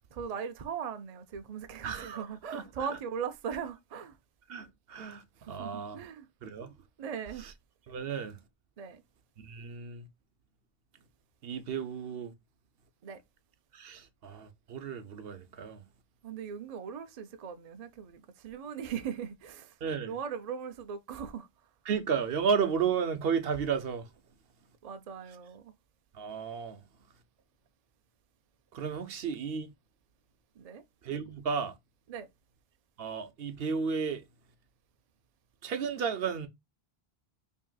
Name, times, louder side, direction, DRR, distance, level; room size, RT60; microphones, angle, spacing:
voice 1, 0.1-4.2 5.6-6.3 7.0-7.5 8.8-9.0 13.0-13.2 16.2-19.7 20.0-21.5 24.8-25.7 30.6-30.8 32.1-32.3, right 7 dB, 50° right, 0.5 m, -39 dB
voice 2, 1.8-2.3 2.5-2.6 4.5-6.0 6.4-6.7 7.4-7.5 7.9-8.4 9.4-10.1 11.4-12.3 13.7-15.8 19.8-20.2 21.9-24.1 26.1-26.8 28.7-29.7 31.0-31.7 33.0-34.2 35.6-36.5, right 6 dB, 70° right, 0.9 m, -33 dB
5.4 x 2.8 x 2.2 m
omnidirectional pair, 1.1 m